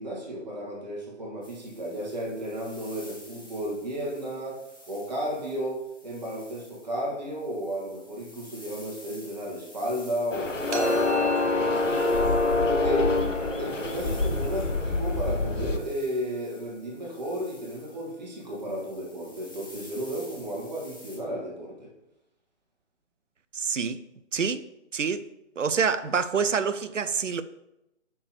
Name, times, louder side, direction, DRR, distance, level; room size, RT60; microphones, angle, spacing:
voice 1, 0.0-4.6 4.9-13.2 13.6-21.9, equal, 35° right, 1.8 m, -33 dB
sound 1, 1.4-21.2, left 1 dB, 15° left, 0.7 m, -51 dB
sound 2, 10.3-15.8, left 3 dB, 90° left, 0.7 m, -26 dB
sound 3, 10.7-16.5, right 3 dB, 70° right, 1.3 m, -37 dB
voice 2, 23.5-24.0 24.3-24.6 24.9-25.3 25.6-27.4, right 6 dB, 85° right, 0.5 m, -26 dB
6.3 x 5.9 x 3.1 m
figure-of-eight pair, 150°, 37 cm